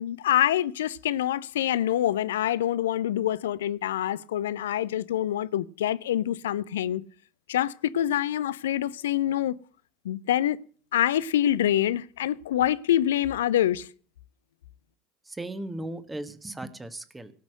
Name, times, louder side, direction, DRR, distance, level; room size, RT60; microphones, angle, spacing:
voice 1, 0.0-7.0 7.5-9.6 10.0-10.6 10.9-13.9, left 12 dB, 65° left, 0.5 m, -26 dB
voice 2, 15.3-17.3, right 1 dB, 10° right, 1.4 m, -37 dB
18.0 x 6.2 x 7.6 m
figure-of-eight pair, 70°, 0 cm